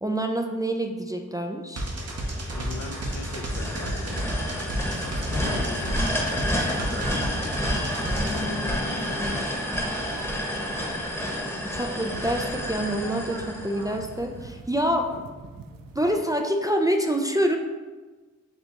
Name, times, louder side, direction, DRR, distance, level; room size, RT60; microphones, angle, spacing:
voice 1, 0.0-1.9 11.6-15.1 16.0-17.6, right 1 dB, 10° right, 3 dB, 0.3 m, -26 dB
sound 1, 1.8-8.5, right 1 dB, 50° right, 0.8 m, -32 dB
sound 2, 2.1-14.2, equal, 10° left, 0.9 m, -30 dB
voice 2, 2.6-4.3 5.0-7.9 8.3-9.7 15.0-15.2, left 4 dB, 70° left, 6 dB, 0.5 m, -39 dB
sound 3, 5.0-16.2, right 4 dB, 90° right, 0.5 m, -45 dB
6.7 x 2.3 x 2.9 m, 1.3 s
wide cardioid pair, 60°, 32 cm